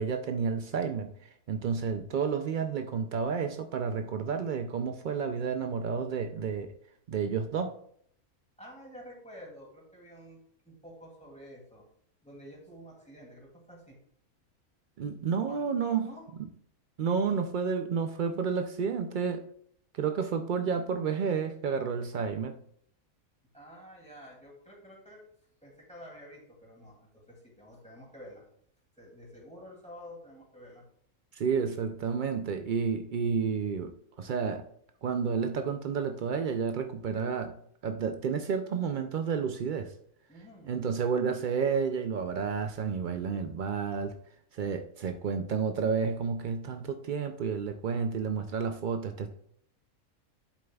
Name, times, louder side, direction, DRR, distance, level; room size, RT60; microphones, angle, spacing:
voice 1, 0.0-6.7 7.1-7.8 15.0-16.1 17.0-19.5 19.9-22.6 31.3-34.6 35.0-37.6 37.8-39.9 40.7-44.1 44.5-49.3, right 6 dB, 90° right, 7 dB, 0.4 m, -31 dB
voice 2, 8.6-11.9 12.2-14.0 15.5-15.7 16.0-16.3 23.5-25.2 25.6-28.4 29.0-30.8 40.3-40.7, equal, 5° left, -3 dB, 2.5 m, -50 dB
8.6 x 7.3 x 2.3 m, 0.65 s
omnidirectional pair, 1.5 m